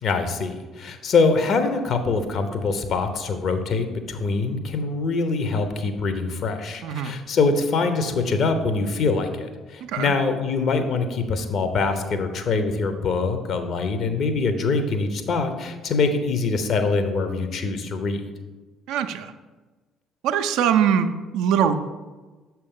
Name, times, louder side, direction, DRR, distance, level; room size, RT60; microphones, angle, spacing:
voice 1, 0.0-18.2, left 4 dB, 50° left, 8 dB, 0.7 m, -24 dB
voice 2, 6.8-7.1 9.8-10.1 18.9-19.3 20.2-21.8, right 8 dB, 65° right, 8 dB, 0.4 m, -22 dB
6.6 x 4.4 x 3.6 m, 1.3 s
figure-of-eight pair, 50°, 0 cm